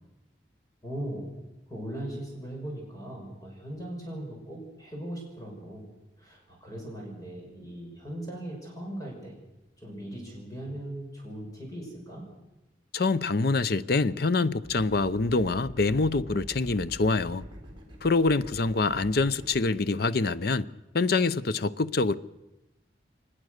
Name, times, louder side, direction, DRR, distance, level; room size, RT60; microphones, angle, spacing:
voice 1, 0.8-1.3 1.7-5.9 6.2-9.4 9.8-12.3, right 1 dB, 20° left, 6.0 m, -39 dB
voice 2, 12.9-17.5 18.0-20.7 20.9-22.2, left 3 dB, 55° left, 0.7 m, -25 dB
sound 1, 14.6-19.7, right 1 dB, 25° right, 3.7 m, -45 dB
23.5 x 20.0 x 6.6 m
head